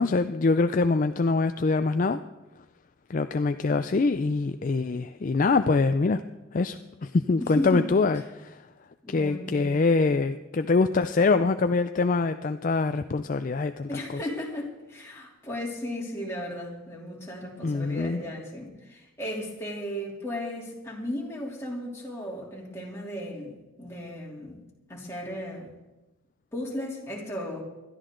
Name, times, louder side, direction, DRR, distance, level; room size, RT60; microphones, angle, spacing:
voice 1, 0.0-2.2 3.1-6.2 6.5-8.6 9.1-14.0 17.6-18.2, left 3 dB, 40° left, 9 dB, 0.4 m, -24 dB
voice 2, 7.4-7.9 9.0-9.8 13.9-24.6 24.9-25.7 26.5-27.6, left 1 dB, 15° left, -3 dB, 3.1 m, -35 dB
20.5 x 13.0 x 3.8 m, 1.1 s
head